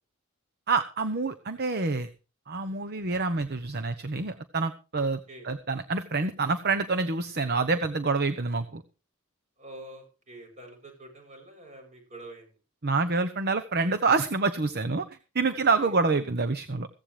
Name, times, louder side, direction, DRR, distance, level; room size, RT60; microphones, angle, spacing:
voice 1, 0.7-2.1 2.5-8.8 12.8-15.0 15.3-16.9, right 3 dB, 50° right, 9 dB, 1.0 m, -27 dB
voice 2, 5.0-5.5 9.6-12.6 15.5-16.0, right 1 dB, 35° right, 3 dB, 7.7 m, -47 dB
16.0 x 15.0 x 3.4 m, 0.33 s
head